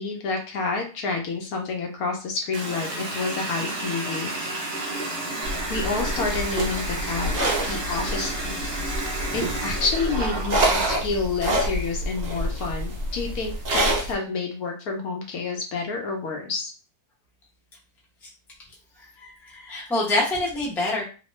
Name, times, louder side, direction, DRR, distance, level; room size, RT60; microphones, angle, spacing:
voice 1, 0.0-4.7 5.7-7.3 7.7-8.8 9.3-16.7, left 4 dB, 70° left, 2 dB, 1.2 m, -29 dB
Water tap faucet, 2.5-11.0, right 2 dB, 45° right, 1.0 m, -31 dB
sound 1, 5.4-14.1, right 1 dB, 65° right, 0.4 m, -27 dB
voice 2, 19.0-21.0, left 2 dB, ahead, -5 dB, 0.6 m, -26 dB
3.0 x 2.2 x 3.1 m, 0.35 s
omnidirectional pair, 1.7 m